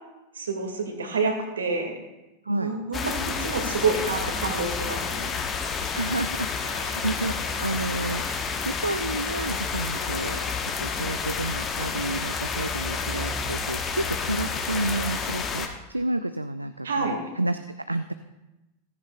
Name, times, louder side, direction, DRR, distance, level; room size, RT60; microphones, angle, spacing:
voice 1, 0.3-1.9 2.5-5.3 16.8-17.2, right 4 dB, 70° right, 3 dB, 1.9 m, -28 dB
voice 2, 2.5-2.8 6.0-8.2 8.6-18.1, right 1 dB, 85° right, 10 dB, 0.3 m, -30 dB
sound 1, 2.9-15.7, left 5 dB, 25° left, 1.0 m, -30 dB
15.5 x 13.5 x 2.3 m, 1.0 s
figure-of-eight pair, 90°, 0 cm